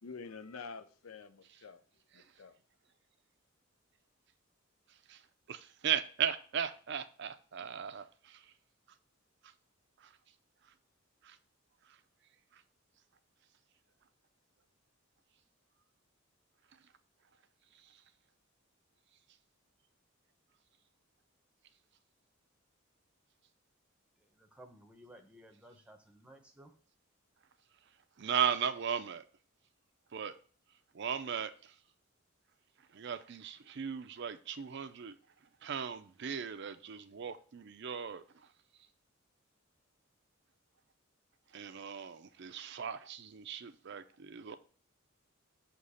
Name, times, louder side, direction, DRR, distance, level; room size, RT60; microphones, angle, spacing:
voice 1, 0.0-1.8 2.1-2.6, left 4 dB, 80° left, 0.6 m, -48 dB
voice 2, 5.5-8.5 9.4-9.5 10.0-10.1 11.2-11.4 11.9-12.0 12.5-12.6 17.8-17.9 28.2-29.2 30.1-30.3 30.9-31.7 32.9-35.2 35.6-38.2 41.5-44.6, right 8 dB, 55° right, 0.5 m, -37 dB
voice 3, 24.2-26.7, right 1 dB, 5° right, 0.8 m, -57 dB
6.4 x 3.0 x 5.5 m
head